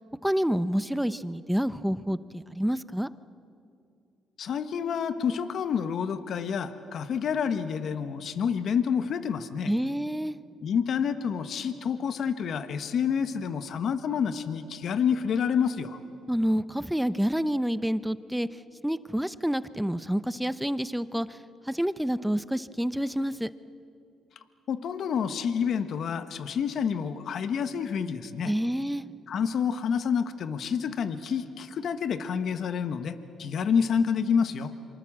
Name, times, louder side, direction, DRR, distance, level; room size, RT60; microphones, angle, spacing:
voice 1, 0.2-3.1 9.7-10.4 16.3-18.5 18.8-21.3 21.7-23.5 28.4-29.0, equal, 5° right, 14 dB, 0.8 m, -28 dB
voice 2, 4.4-9.7 10.6-16.0 24.7-28.5 29.3-34.7, left 7 dB, 65° left, 10 dB, 1.4 m, -28 dB
27.0 x 25.0 x 7.5 m, 2.5 s
supercardioid pair, 70°, 0 cm